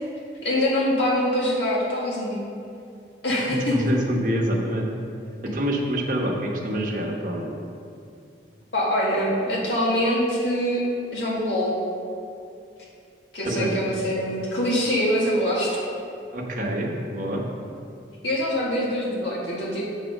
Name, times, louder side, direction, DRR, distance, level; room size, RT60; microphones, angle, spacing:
voice 1, 0.4-2.5 3.2-3.8 8.7-10.8 11.1-11.8 13.3-15.8 18.2-19.8, equal, 80° left, -5 dB, 1.9 m, -24 dB
voice 2, 3.5-4.9 5.4-7.5 13.4-13.9 16.3-17.4, equal, 45° right, -1 dB, 1.1 m, -26 dB
8.3 x 4.1 x 6.5 m, 2.5 s
head